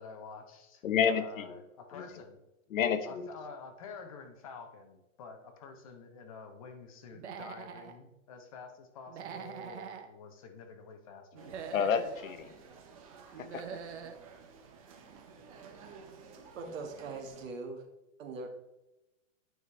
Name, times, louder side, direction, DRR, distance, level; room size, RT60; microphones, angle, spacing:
voice 1, 0.0-2.4 3.1-11.7, left 5 dB, 25° left, 5 dB, 0.6 m, -49 dB
voice 2, 0.8-1.5 1.9-2.0 2.7-3.3 11.7-12.5 13.4-13.6, left 7 dB, 90° left, 10 dB, 1.0 m, -30 dB
Human voice / Animal, 7.1-7.9 9.1-10.1 11.3-12.2 13.3-14.2, right 7 dB, 60° right, 0.9 m, -43 dB
sound 1, 11.4-17.5, right 5 dB, 25° right, 0.6 m, -53 dB
voice 3, 16.6-17.8 18.2-18.5, right 3 dB, 75° right, 3 dB, 1.7 m, -41 dB
9.3 x 4.9 x 3.3 m, 0.94 s
hypercardioid pair, 170°, 39 cm